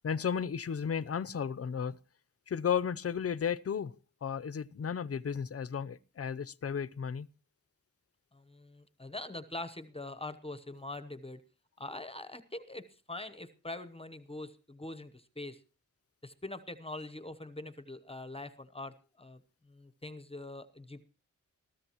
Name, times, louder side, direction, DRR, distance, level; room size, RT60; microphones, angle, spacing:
voice 1, 0.0-2.0 2.5-7.3, left 7 dB, 50° left, 0.7 m, -34 dB
voice 2, 8.3-11.4 11.8-15.6 16.2-19.4 19.6-21.0, left 2 dB, 20° left, 0.9 m, -43 dB
22.0 x 14.0 x 3.0 m
wide cardioid pair, 165°, 31 cm